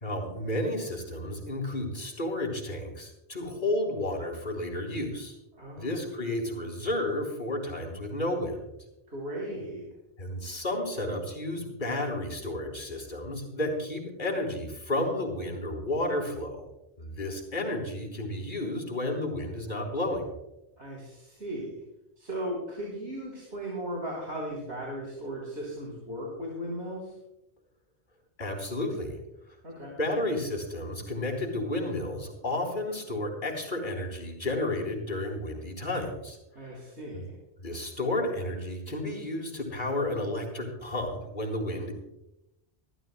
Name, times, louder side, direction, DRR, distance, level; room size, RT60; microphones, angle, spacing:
voice 1, 0.0-5.4 5.8-8.6 10.2-16.7 17.0-20.3 28.4-29.2 30.0-36.4 36.6-36.7 37.1-37.2 37.6-42.0, left 1 dB, 45° left, 0 dB, 3.7 m, -32 dB
voice 2, 5.5-6.0 9.1-9.9 20.8-21.8 22.2-27.2 29.6-29.9 36.6-37.3, right 1 dB, 80° right, -3 dB, 3.9 m, -37 dB
26.5 x 13.0 x 2.2 m, 0.91 s
omnidirectional pair, 1.1 m